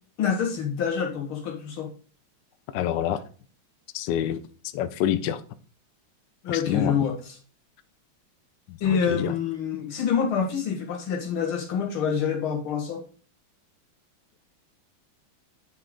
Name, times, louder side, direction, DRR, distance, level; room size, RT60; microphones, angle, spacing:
voice 1, 0.2-1.9 6.4-7.2 8.8-13.0, left 7 dB, 85° left, 2.5 m, -26 dB
voice 2, 2.7-3.2 3.9-4.4 4.7-5.4 6.5-7.1 8.7-9.3, left 10 dB, 70° left, 1.1 m, -27 dB
9.4 x 4.5 x 3.7 m
omnidirectional pair, 2.2 m